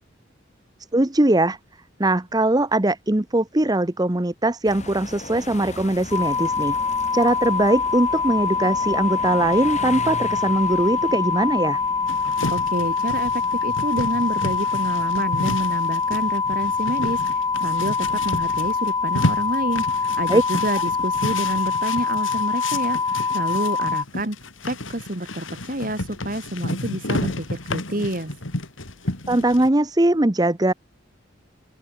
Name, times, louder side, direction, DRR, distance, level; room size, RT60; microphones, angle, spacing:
voice 1, 0.9-1.6 2.0-6.7 7.1-11.8 20.3-20.4 29.3-30.7, right 1 dB, 20° right, 0.9 m, -21 dB
sound 1, 4.6-21.7, left 2 dB, 35° left, 4.4 m, -41 dB
sound 2, 6.1-24.0, left 5 dB, 20° left, 0.7 m, -24 dB
sound 3, 12.1-29.7, left 2 dB, 90° left, 3.4 m, -31 dB
voice 2, 12.5-24.4 24.6-28.3, right 1 dB, 45° right, 3.2 m, -28 dB
open air
head